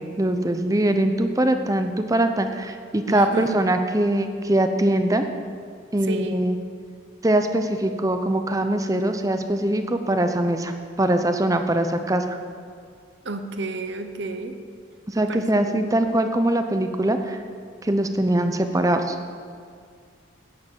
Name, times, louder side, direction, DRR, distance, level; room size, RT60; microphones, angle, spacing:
voice 1, 0.0-5.2 5.9-6.5 7.2-10.7 11.0-12.4 15.1-17.4 17.8-19.2, right 1 dB, 15° right, 7 dB, 0.7 m, -22 dB
voice 2, 3.1-3.6 6.0-6.4 13.2-14.6 15.2-15.8, right 2 dB, 60° right, 7 dB, 0.8 m, -31 dB
10.5 x 9.3 x 7.4 m, 2.2 s
head